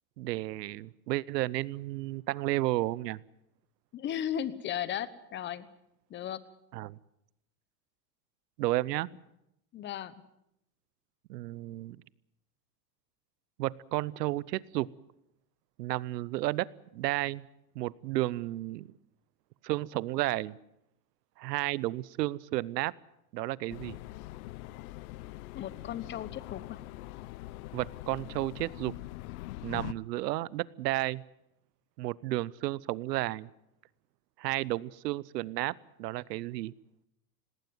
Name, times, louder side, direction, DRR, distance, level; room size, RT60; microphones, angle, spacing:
voice 1, 0.2-3.2 6.7-7.0 8.6-9.1 11.3-12.0 13.6-14.9 15.8-17.5 17.7-18.9 19.6-20.6 21.4-22.9 23.3-24.0 27.7-28.9 29.6-31.2 32.0-33.5 34.4-35.7 36.0-36.7, right 17 dB, 85° right, 23 dB, 0.9 m, -32 dB
voice 2, 3.9-5.7 6.1-6.4 9.7-10.1 25.5-26.8, left 10 dB, 25° left, 16 dB, 1.0 m, -36 dB
sound 1, 23.7-29.9, left 17 dB, 60° left, 0.8 m, -43 dB
19.5 x 17.5 x 9.2 m, 0.82 s
supercardioid pair, 145°, 48 cm